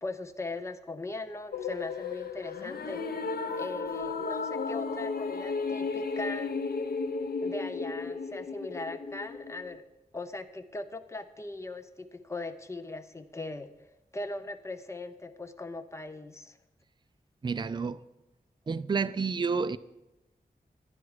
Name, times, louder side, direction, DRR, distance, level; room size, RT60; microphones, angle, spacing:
voice 1, 0.0-3.0 3.5-6.6 7.4-9.8 10.1-13.7 14.1-16.6, left 2 dB, 20° left, 0.6 m, -39 dB
sound 1, 1.5-9.8, left 4 dB, 85° left, 0.7 m, -34 dB
voice 2, 17.4-18.0 18.7-19.8, right 5 dB, 30° right, 0.4 m, -29 dB
11.0 x 10.5 x 4.8 m
wide cardioid pair, 105°, 15 cm